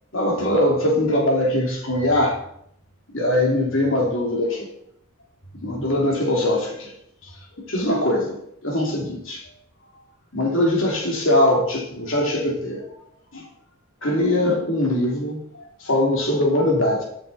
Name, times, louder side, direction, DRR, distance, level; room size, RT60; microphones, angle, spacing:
voice 1, 0.1-2.4 3.1-4.7 5.6-6.9 7.6-9.4 10.3-12.9 13.3-13.4 14.0-15.4 15.8-17.0, left 1 dB, 60° left, -1 dB, 3.0 m, -21 dB
12.0 x 7.0 x 4.2 m, 0.74 s
head